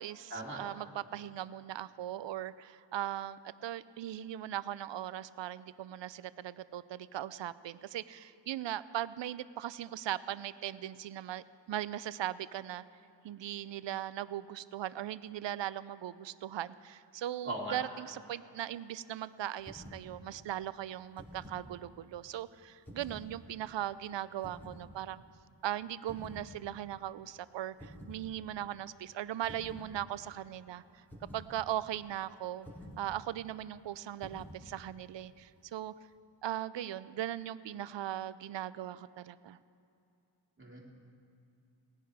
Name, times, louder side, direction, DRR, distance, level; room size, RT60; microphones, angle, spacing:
voice 1, 0.0-12.8 13.2-25.2 25.6-30.8 31.3-32.7 33.0-35.9 36.4-39.6, right 12 dB, 75° right, 17 dB, 0.5 m, -39 dB
voice 2, 17.4-17.8 40.6-40.8, right 1 dB, 25° right, -3 dB, 2.8 m, -38 dB
sound 1, 19.6-20.1 21.0-21.7 22.8-23.3 24.4-24.8 26.1-26.5 27.8-28.2 29.4-29.9 31.1-31.5 32.6-33.0 34.2-34.6, equal, 5° left, 3.1 m, -49 dB
18.5 x 10.0 x 4.9 m, 2.7 s
wide cardioid pair, 80°, 45 cm